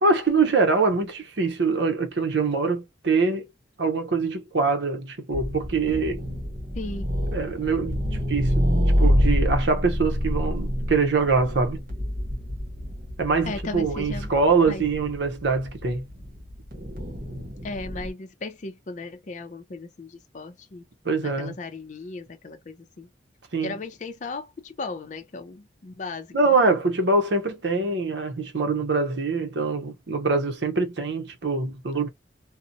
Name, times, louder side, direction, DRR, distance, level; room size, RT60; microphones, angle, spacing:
voice 1, 0.0-3.5 3.8-6.2 7.3-8.0 8.3-8.7 9.0-11.8 13.2-16.0 21.0-21.6 23.5-23.8 26.3-32.1, right 4 dB, 75° right, 0.7 m, -24 dB
sound 1, 5.3-18.1, equal, 55° right, 1.0 m, -27 dB
voice 2, 6.8-7.1 13.4-14.3 14.7-14.8 17.6-20.8 21.1-23.1 23.6-26.4, left 3 dB, 40° left, 0.5 m, -36 dB
2.7 x 2.1 x 2.5 m
head